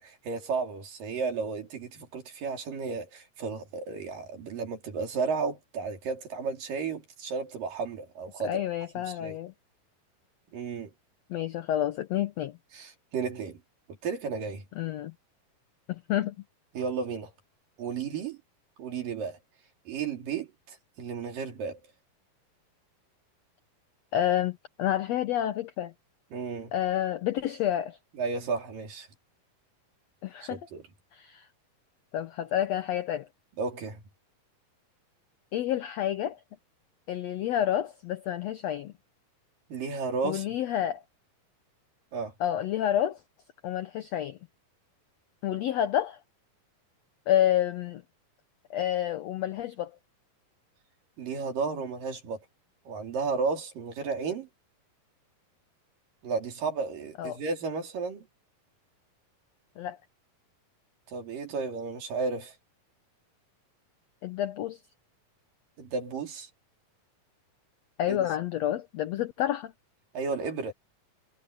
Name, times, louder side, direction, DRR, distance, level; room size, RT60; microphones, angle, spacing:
voice 1, 0.0-8.6 8.9-9.4 10.5-10.9 12.7-13.6 14.0-14.6 16.7-17.3 17.8-18.4 18.8-19.4 19.9-21.8 26.3-26.7 28.2-29.1 30.5-30.8 33.6-34.0 39.7-40.4 42.1-42.3 51.2-52.4 52.9-54.5 56.2-58.3 61.1-62.5 65.8-66.5 68.1-68.3 70.1-70.7, right 5 dB, 75° right, 5.0 m, -33 dB
voice 2, 8.4-9.5 11.3-12.5 14.8-15.1 15.9-16.4 24.1-25.9 26.7-28.0 30.2-30.6 31.1-31.5 32.1-33.3 35.5-36.4 37.1-38.9 40.2-41.0 42.4-43.2 43.6-44.4 45.4-46.2 47.3-48.0 48.7-49.9 57.2-57.4 59.8-60.0 64.2-64.8 68.0-69.7, left 11 dB, 75° left, 1.5 m, -29 dB
omnidirectional pair, 4.0 m